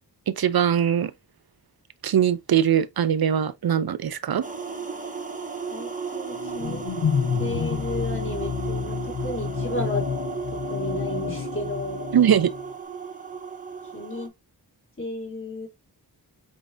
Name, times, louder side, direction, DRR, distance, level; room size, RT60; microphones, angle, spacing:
voice 1, 0.3-1.1 2.0-4.4 12.1-12.5, right 9 dB, 60° right, 0.5 m, -21 dB
sound 1, 4.4-14.3, right 6 dB, 20° right, 0.8 m, -35 dB
voice 2, 5.7-6.8 7.4-10.1 10.5-12.1 13.9-14.3 15.0-15.7, left 1 dB, 30° left, 2.9 m, -33 dB
sound 2, 6.3-12.7, left 7 dB, 70° left, 0.8 m, -29 dB
5.0 x 3.2 x 2.5 m
wide cardioid pair, 65°, 41 cm